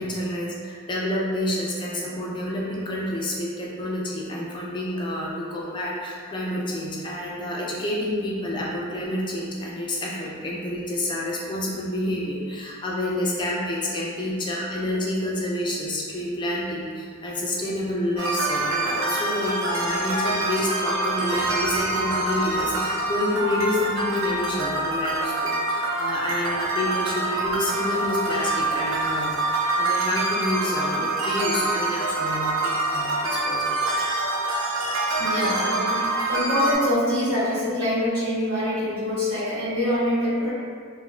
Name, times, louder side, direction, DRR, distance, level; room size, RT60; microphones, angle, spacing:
voice 1, 0.0-29.3 29.8-33.8 34.8-34.9, left 1 dB, 25° left, -4 dB, 0.4 m, -28 dB
sound 1, 18.2-36.7, right 2 dB, 65° right, 0.4 m, -25 dB
voice 2, 35.1-40.5, left 1 dB, 85° right, -12 dB, 1.4 m, -25 dB
3.1 x 2.1 x 2.4 m, 2.1 s
head